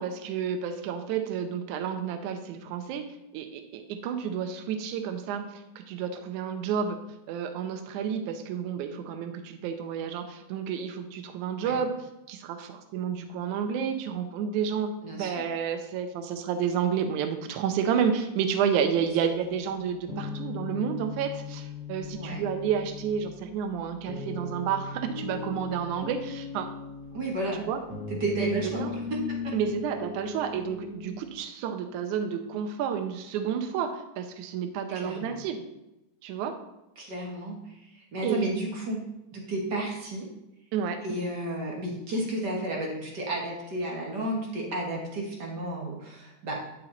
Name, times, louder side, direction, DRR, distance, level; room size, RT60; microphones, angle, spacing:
voice 1, 0.0-3.0 3.3-5.5 5.8-7.0 7.3-12.0 12.3-26.7 27.5-27.8 28.4-28.9 29.5-35.7 36.2-36.6 38.2-38.5 40.7-41.0, right 7 dB, 70° right, 7 dB, 2.1 m, -30 dB
voice 2, 15.0-15.4 22.1-22.4 27.1-27.6 28.1-28.8 29.1-29.5 34.9-35.4 37.0-39.0 39.3-40.3 41.0-46.5, right 1 dB, 50° right, -1 dB, 1.3 m, -32 dB
sound 1, 18.9-31.2, left 4 dB, ahead, 0.8 m, -39 dB
10.0 x 5.7 x 3.9 m, 0.93 s
omnidirectional pair, 3.9 m